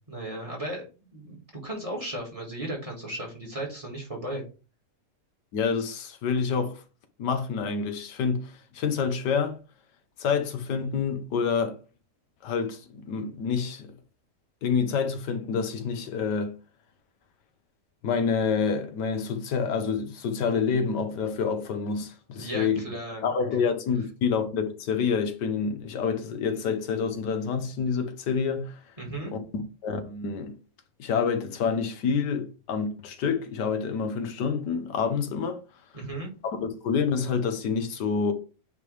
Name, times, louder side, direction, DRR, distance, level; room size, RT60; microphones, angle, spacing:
voice 1, 0.1-0.9 1.1-4.4 22.4-23.3 23.6-23.7 29.0-29.3 35.9-36.3, right 1 dB, 20° right, 1.8 m, -35 dB
voice 2, 5.5-6.8 7.2-9.6 10.2-11.8 12.4-13.9 14.6-16.5 18.0-22.8 23.2-28.8 29.3-30.6 31.0-35.6 36.4-38.3, left 6 dB, 85° left, 1.5 m, -27 dB
8.9 x 3.3 x 3.3 m
omnidirectional pair, 1.8 m